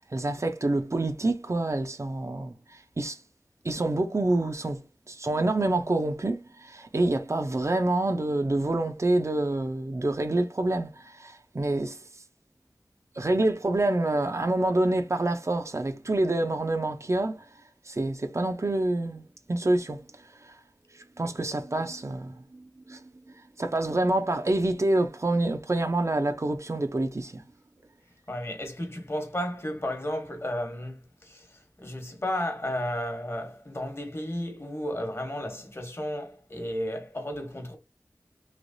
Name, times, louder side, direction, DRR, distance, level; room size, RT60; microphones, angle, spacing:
voice 1, 0.1-2.6 3.0-3.2 3.6-4.8 5.1-12.0 13.2-17.5 17.9-19.2 19.5-20.0 20.4-20.5 21.2-23.0 23.6-27.4, right 2 dB, 45° right, 0.6 m, -27 dB
voice 2, 28.3-31.4 31.8-37.8, left 1 dB, 40° left, 1.2 m, -33 dB
3.3 x 3.0 x 2.6 m
wide cardioid pair, 45°, 7 cm